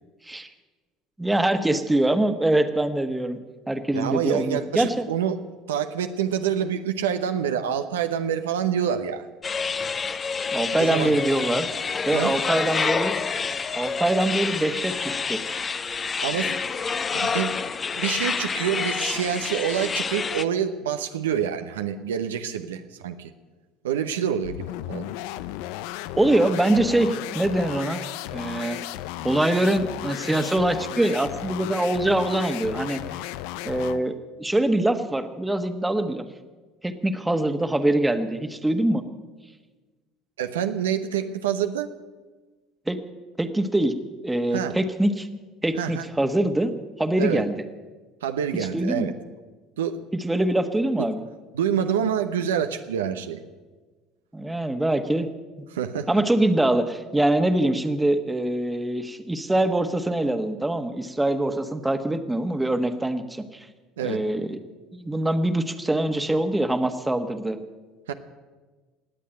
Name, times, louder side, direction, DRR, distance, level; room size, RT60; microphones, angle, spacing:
voice 1, 1.2-3.4 3.7-5.0 10.5-11.7 12.1-13.2 13.7-15.4 26.2-28.0 28.3-28.8 29.2-33.0 33.6-36.2 36.8-39.0 42.9-43.0 43.4-43.9 44.2-45.3 45.6-46.7 47.0-47.6 48.7-49.1 50.2-51.2 54.3-55.3 56.1-63.7 64.0-64.6 64.9-67.6, right 1 dB, 10° right, 9 dB, 1.4 m, -24 dB
voice 2, 3.9-5.4 5.7-9.3 10.8-11.1 12.1-12.3 16.2-16.5 17.1-17.7 17.9-23.3 23.8-25.1 40.4-41.9 44.5-44.8 45.8-46.0 47.2-47.4 48.2-49.1 49.8-50.0 51.0-51.1 51.5-53.4 55.7-56.1 64.0-64.2 68.1-68.2, right 8 dB, 85° right, 8 dB, 0.8 m, -27 dB
sound 1, 9.4-20.4, left 5 dB, 30° left, 0.8 m, -28 dB
sound 2, 24.4-34.1, left 14 dB, 75° left, 0.5 m, -35 dB
19.5 x 8.4 x 8.9 m, 1.3 s
hypercardioid pair, 75°, 0 cm